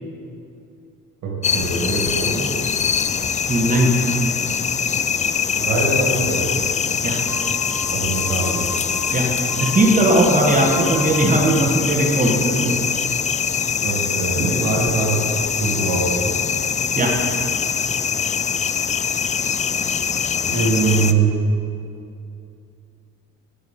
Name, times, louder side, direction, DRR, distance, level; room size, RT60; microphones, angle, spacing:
voice 1, 1.2-2.6 5.5-6.5 7.9-8.7 13.8-15.2 15.6-16.3 20.5-21.4, right 3 dB, 85° right, -2 dB, 2.3 m, -22 dB
sound 1, 1.4-21.1, left 7 dB, 25° left, 0.4 m, -23 dB
voice 2, 3.5-4.0 7.0-7.2 9.1-9.3 9.6-12.8 17.0-17.2, right 1 dB, 25° right, 0 dB, 1.4 m, -18 dB
sound 2, 7.3-11.6, equal, 5° right, 1.4 m, -36 dB
13.0 x 6.9 x 4.3 m, 2.6 s
cardioid pair, 90°, 30 cm